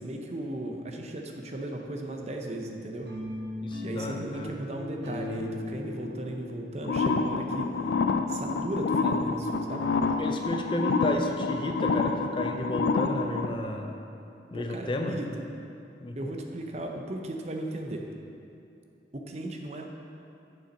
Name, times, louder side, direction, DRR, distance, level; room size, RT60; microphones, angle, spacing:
voice 1, 0.0-3.1 3.8-7.7 8.3-9.9 14.5-15.3 16.2-18.0 19.1-19.9, right 1 dB, 40° right, 2 dB, 0.7 m, -36 dB
sound 1, 3.0-8.1, left 1 dB, 85° right, 1.5 m, -38 dB
voice 2, 3.6-4.5 10.2-14.0 14.5-15.2 16.0-16.2, left 1 dB, 30° left, 4 dB, 0.4 m, -32 dB
sound 2, 6.8-13.5, left 4 dB, 90° left, 0.4 m, -27 dB
7.2 x 7.0 x 5.3 m, 2.7 s
head